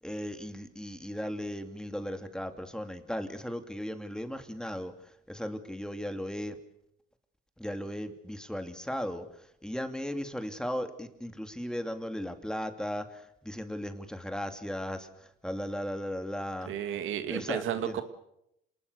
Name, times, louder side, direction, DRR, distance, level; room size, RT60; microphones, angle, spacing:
voice 1, 0.0-6.6 7.6-16.7 17.3-18.0, equal, 5° left, 7 dB, 2.5 m, -37 dB
voice 2, 16.7-18.0, right 9 dB, 80° right, 9 dB, 2.2 m, -32 dB
27.0 x 20.0 x 6.8 m, 0.80 s
cardioid pair, 90°, 20 cm